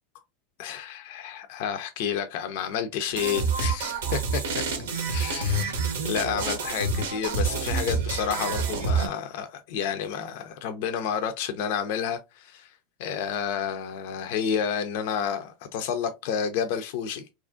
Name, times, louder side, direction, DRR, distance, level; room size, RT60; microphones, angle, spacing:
voice 1, 0.6-4.6 5.1-5.8 6.0-12.7 13.0-17.2, left 8 dB, 65° left, 0.4 m, -30 dB
sound 1, 3.1-9.1, right 4 dB, 85° right, 0.7 m, -27 dB
2.9 x 2.5 x 2.3 m
hypercardioid pair, 105°, 0 cm